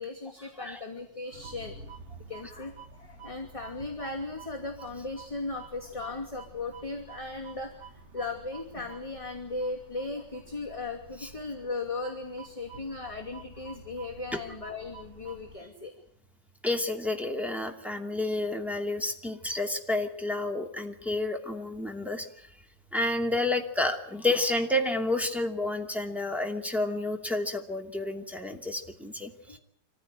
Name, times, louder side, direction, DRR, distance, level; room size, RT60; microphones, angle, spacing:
voice 1, 0.0-1.8 2.3-15.9 29.5-29.6, left 3 dB, 15° left, 0 dB, 2.7 m, -37 dB
sound 1, 1.3-15.6, right 4 dB, 40° right, 2.2 m, -49 dB
voice 2, 16.6-22.3 22.9-29.6, left 2 dB, ahead, 2 dB, 2.6 m, -30 dB
26.0 x 15.5 x 9.3 m, 0.65 s
omnidirectional pair, 2.0 m